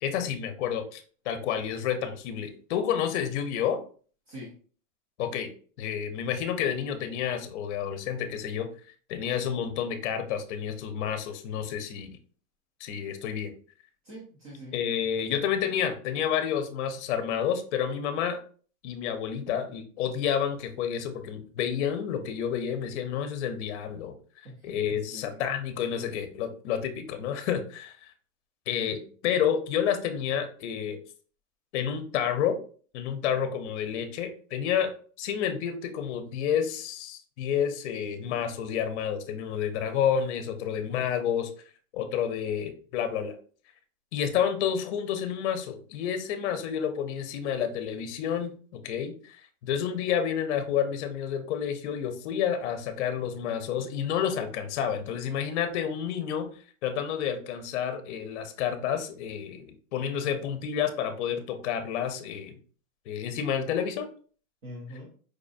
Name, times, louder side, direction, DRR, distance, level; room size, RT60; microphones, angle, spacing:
voice 1, 0.0-3.8 5.2-5.5 5.8-8.7 9.1-12.2 12.8-13.5 14.7-18.4 18.8-28.0 28.7-31.0 31.7-32.6 32.9-34.9 35.2-41.5 41.9-43.3 44.1-56.5 56.8-62.6 63.1-64.1, left 8 dB, 50° left, 7 dB, 0.7 m, -30 dB
voice 2, 14.0-14.7 24.4-25.4 64.6-65.1, equal, 20° right, -5 dB, 0.4 m, -44 dB
4.8 x 2.5 x 2.4 m, 0.42 s
supercardioid pair, 165°, 43 cm